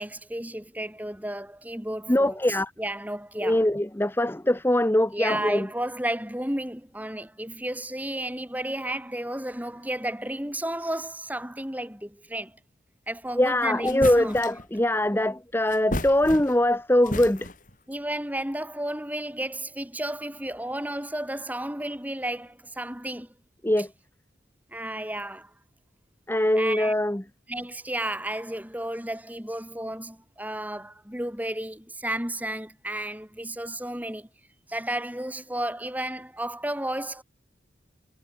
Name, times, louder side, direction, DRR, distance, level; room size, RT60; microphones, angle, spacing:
voice 1, 0.0-3.6 5.1-12.6 13.1-14.3 17.9-23.3 23.8-23.9 24.7-25.5 26.6-26.9 27.5-34.3 34.7-37.2, right 1 dB, 10° right, 4.3 m, -33 dB
voice 2, 2.1-2.7 3.4-5.7 13.4-17.5 23.6-23.9 26.3-27.2, left 1 dB, 10° left, 0.8 m, -22 dB
sound 1, 13.4-13.5 13.8-14.7 15.7-16.7 17.0-17.8, left 1 dB, 45° left, 5.9 m, -34 dB
head